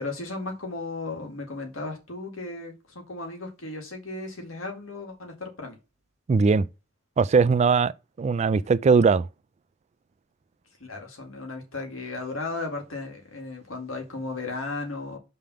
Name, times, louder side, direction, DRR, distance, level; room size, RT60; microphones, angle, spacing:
voice 1, 0.0-5.8 10.8-15.2, left 3 dB, 90° left, 2.1 m, -35 dB
voice 2, 6.3-6.7 7.2-7.9 8.2-9.3, right 5 dB, 35° right, 0.3 m, -20 dB
5.4 x 3.4 x 5.7 m
head